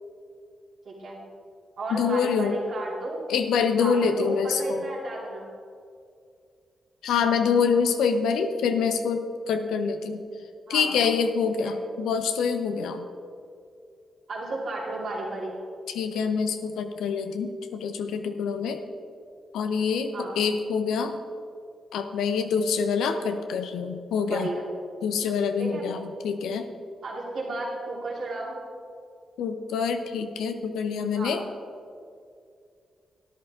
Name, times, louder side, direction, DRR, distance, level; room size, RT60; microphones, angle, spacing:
voice 1, 0.8-1.2 1.8-3.2 3.8-5.4 10.7-11.1 11.6-11.7 14.3-15.5 20.1-20.3 24.1-24.6 25.6-25.9 27.0-28.6 31.1-31.4, right 2 dB, 70° right, -4 dB, 3.3 m, -33 dB
voice 2, 1.9-2.6 3.3-4.8 7.0-10.2 10.7-13.0 15.9-18.8 19.5-21.2 21.9-24.5 25.0-26.7 29.4-31.4, left 6 dB, 85° left, 7 dB, 0.7 m, -26 dB
13.0 x 10.5 x 3.8 m, 2.4 s
supercardioid pair, 45°, 0 cm